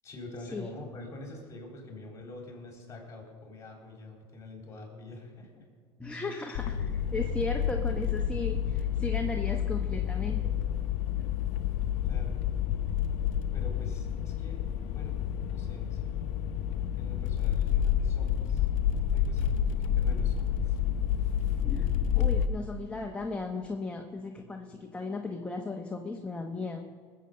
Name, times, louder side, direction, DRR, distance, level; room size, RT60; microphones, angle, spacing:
voice 1, 0.0-5.7 12.0-12.4 13.5-14.6 14.9-15.2 15.5-16.2 17.0-18.7 19.0-20.8, left 2 dB, 25° left, 1 dB, 3.9 m, -46 dB
voice 2, 6.0-10.5 21.6-26.9, left 2 dB, 10° left, 2 dB, 1.0 m, -36 dB
sound 1, 6.5-22.5, left 9 dB, 65° left, 0.7 m, -29 dB
19.5 x 7.8 x 6.8 m, 2.1 s
supercardioid pair, 125°, 12 cm